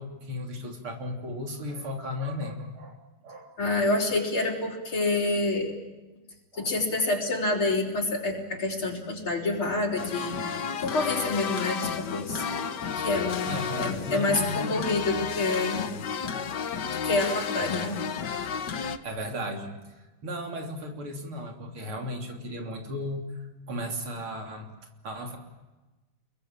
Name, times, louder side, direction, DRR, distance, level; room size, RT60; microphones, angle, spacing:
voice 1, 0.0-3.5 6.5-6.7 13.5-14.8 19.0-19.8 20.2-23.3 23.7-24.7 25.0-25.4, left 1 dB, 80° right, 3 dB, 4.1 m, -35 dB
voice 2, 3.6-5.7 6.6-10.4 10.8-12.4 13.0-15.9 17.0-18.0, left 2 dB, 80° left, -4 dB, 5.1 m, -27 dB
sound 1, 10.0-19.0, left 6 dB, 55° left, 1.7 m, -32 dB
29.5 x 22.5 x 8.9 m, 1.1 s
omnidirectional pair, 2.3 m